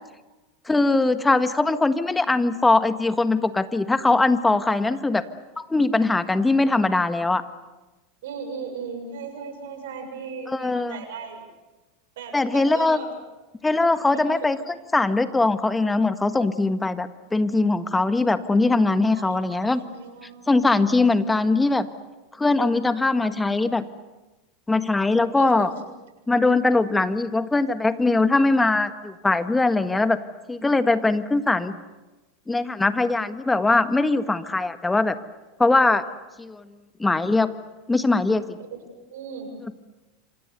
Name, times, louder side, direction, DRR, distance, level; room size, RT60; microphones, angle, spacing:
voice 1, 0.7-5.2 5.6-7.4 10.5-11.0 12.3-13.0 13.6-14.6 14.9-19.8 20.5-21.9 22.4-23.8 24.7-25.7 26.3-30.2 30.5-31.7 32.5-35.1 35.6-36.0 36.4-36.6 37.0-37.5 37.9-38.6, left 3 dB, 10° left, 10 dB, 1.6 m, -21 dB
voice 2, 8.2-11.5 12.2-13.1 14.1-14.5 19.1-20.7 25.3-25.8 38.6-38.7 39.1-39.5, right 5 dB, 70° right, 5 dB, 7.2 m, -37 dB
27.5 x 27.0 x 6.8 m, 1.1 s
hypercardioid pair, 95°, 0 cm